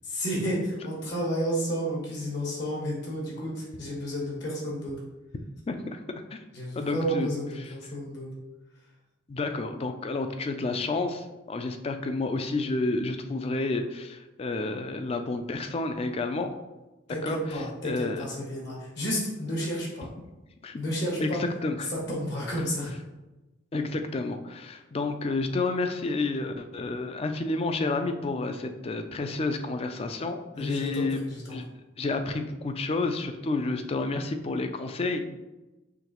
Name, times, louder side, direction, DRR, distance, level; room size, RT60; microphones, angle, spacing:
voice 1, 0.0-4.9 6.5-8.3 17.1-20.1 20.8-21.4 21.9-22.9 30.5-31.6, equal, 60° left, -4 dB, 1.3 m, -31 dB
voice 2, 5.7-6.0 6.3-6.4 6.8-7.3 7.6-7.7 9.3-16.6 17.2-18.2 20.6-20.8 21.2-21.9 23.7-31.2 31.5-31.6 32.0-35.3, left 3 dB, 30° left, 7 dB, 0.3 m, -30 dB
5.8 x 2.9 x 2.9 m, 1.1 s
head